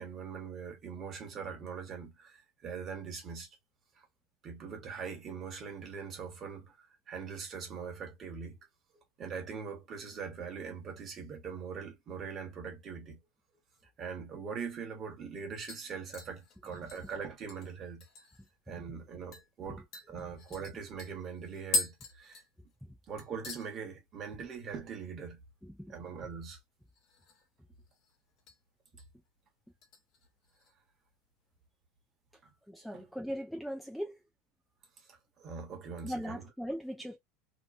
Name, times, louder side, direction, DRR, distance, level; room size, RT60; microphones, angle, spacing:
voice 1, 0.0-3.5 4.0-4.1 4.4-8.6 8.9-13.2 14.0-18.0 18.7-22.4 23.1-25.4 25.9-26.6 32.4-32.5 32.9-33.0 35.1-36.5, right 6 dB, 35° right, 1.2 m, -42 dB
sound 1, 14.7-14.8 15.1-15.4 15.7-18.5 18.9-19.0 19.3-19.5 19.9-22.9 23.2-23.7 24.0-24.4 24.7-24.8 26.9-27.5 27.8-28.6 29.0-29.3 29.8-30.7 31.1-31.2, left 2 dB, 45° left, 0.8 m, -40 dB
voice 2, 25.6-25.9 32.7-34.2 36.0-37.2, equal, ahead, 0.4 m, -39 dB
2.9 x 2.1 x 2.5 m
supercardioid pair, 145°, 0 cm